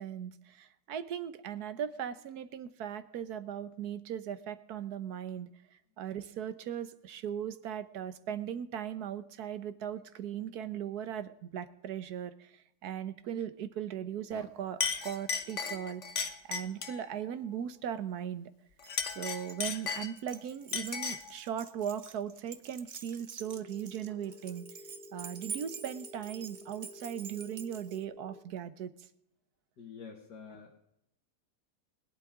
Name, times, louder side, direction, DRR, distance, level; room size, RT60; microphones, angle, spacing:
voice 1, 0.0-5.5 6.0-16.0 16.4-18.5 19.1-24.7 25.1-28.9, right 9 dB, 70° right, 13 dB, 1.4 m, -38 dB
Chink clink, 14.3-14.5 14.8-17.0 18.8-20.3 20.7-21.3, left 6 dB, 50° left, 1.4 m, -35 dB
Keys jangling, 18.8-28.0, right 5 dB, 40° right, 0.7 m, -47 dB
Telephone, 23.4-28.4, left 3 dB, ahead, 1.4 m, -52 dB
voice 2, 29.8-30.8, left 6 dB, 80° left, 1 dB, 2.3 m, -48 dB
21.5 x 11.5 x 3.7 m, 0.79 s
omnidirectional pair, 1.8 m